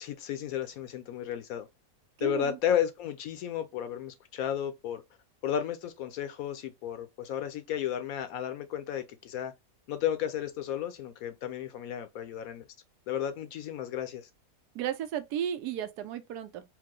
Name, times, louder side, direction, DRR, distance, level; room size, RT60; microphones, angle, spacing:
voice 1, 0.0-1.7 2.2-5.0 5.4-9.5 9.9-12.7 13.1-14.3, left 10 dB, 70° left, 1.0 m, -33 dB
voice 2, 2.2-2.6 14.7-16.6, right 10 dB, 85° right, 1.2 m, -34 dB
4.7 x 2.1 x 3.6 m
omnidirectional pair, 1.7 m